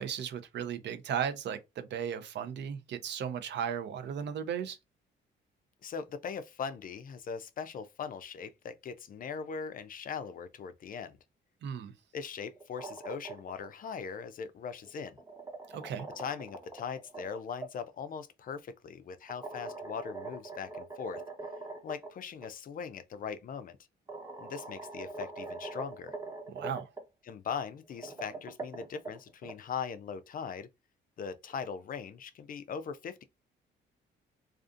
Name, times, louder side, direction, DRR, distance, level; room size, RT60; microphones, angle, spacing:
voice 1, 0.0-4.8 11.6-11.9 15.7-16.1 26.5-26.9, right 8 dB, 65° right, 0.6 m, -36 dB
voice 2, 5.8-11.2 12.1-15.2 16.2-21.2 21.8-23.8 24.4-26.1 27.2-30.7 31.2-33.2, left 6 dB, 45° left, 0.4 m, -40 dB
sound 1, 12.5-13.7 14.8-17.7 19.3-22.1 22.4-22.5 23.6-23.7 24.1-27.0 27.8-29.5, right 3 dB, 15° right, 0.8 m, -43 dB
2.5 x 2.4 x 2.5 m
cardioid pair, 90°, 20 cm